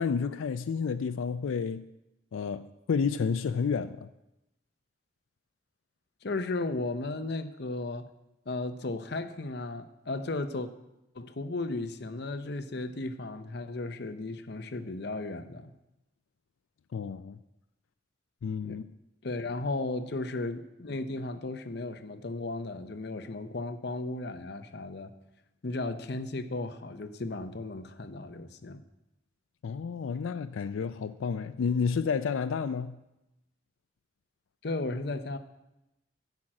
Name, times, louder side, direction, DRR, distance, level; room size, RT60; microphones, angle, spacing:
voice 1, 0.0-1.9 2.3-4.1 16.9-17.4 18.4-18.9 29.6-33.0, left 6 dB, 85° left, 0.4 m, -30 dB
voice 2, 6.2-8.1 8.5-10.7 11.1-15.7 18.6-18.8 19.2-25.1 25.6-28.8 34.6-35.4, left 2 dB, 55° left, 0.7 m, -35 dB
10.5 x 6.0 x 7.6 m
head